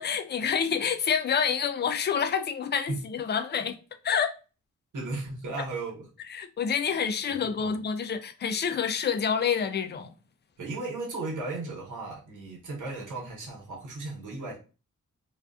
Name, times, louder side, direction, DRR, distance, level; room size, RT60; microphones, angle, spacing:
voice 1, 0.0-3.8 4.0-4.3 6.3-10.1, left 7 dB, 35° left, 0.4 m, -28 dB
voice 2, 4.9-6.1 7.3-7.8 10.6-14.6, right 3 dB, 75° right, 1.0 m, -36 dB
2.4 x 2.3 x 2.4 m
cardioid pair, 75°, 31 cm